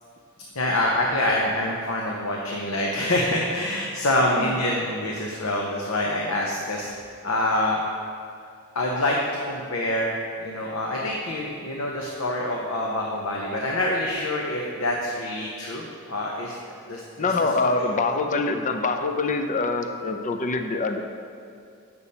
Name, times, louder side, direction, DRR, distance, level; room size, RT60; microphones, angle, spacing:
voice 1, 0.5-6.9 7.2-7.8 8.7-9.2 9.5-16.5 16.9-17.3 17.7-17.9, left 1 dB, 75° left, -2 dB, 0.8 m, -26 dB
voice 2, 17.2-21.0, left 3 dB, 40° left, 6 dB, 0.5 m, -25 dB
8.4 x 6.9 x 4.2 m, 2.4 s
head